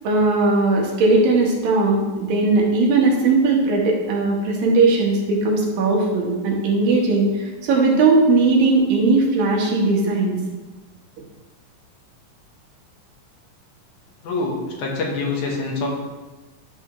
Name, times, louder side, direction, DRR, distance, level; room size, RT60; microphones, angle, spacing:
voice 1, 0.0-7.3 7.6-10.3, right 3 dB, 90° right, -1 dB, 3.1 m, -18 dB
voice 2, 14.2-15.9, left 3 dB, 70° left, -1 dB, 2.6 m, -25 dB
11.5 x 5.9 x 3.1 m, 1.2 s
omnidirectional pair, 3.9 m